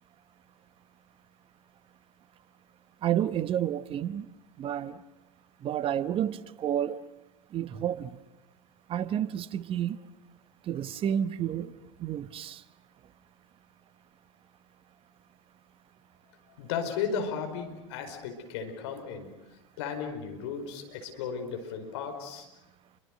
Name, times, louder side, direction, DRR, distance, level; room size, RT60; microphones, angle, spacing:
voice 1, 3.0-4.3 4.6-5.0 5.6-7.0 7.5-8.2 8.9-10.0 10.6-12.6, right 10 dB, 35° right, 1.1 m, -30 dB
voice 2, 16.6-19.3 19.8-22.5, left 6 dB, 60° left, 5.0 m, -35 dB
29.5 x 24.5 x 6.6 m
figure-of-eight pair, 85°, 16 cm